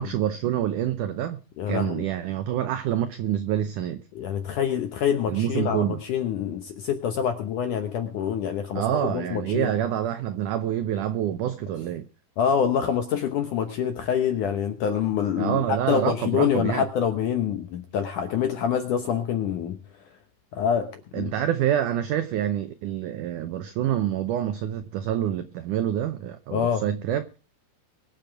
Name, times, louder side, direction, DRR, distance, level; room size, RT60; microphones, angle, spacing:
voice 1, 0.0-1.4 1.7-4.0 5.3-6.0 8.7-12.1 15.4-16.9 21.1-27.2, right 11 dB, 85° right, 1.8 m, -27 dB
voice 2, 1.6-2.0 4.1-9.7 12.4-19.8 20.5-21.3 26.5-26.8, left 8 dB, 65° left, 2.1 m, -26 dB
23.0 x 7.8 x 4.7 m
omnidirectional pair, 4.7 m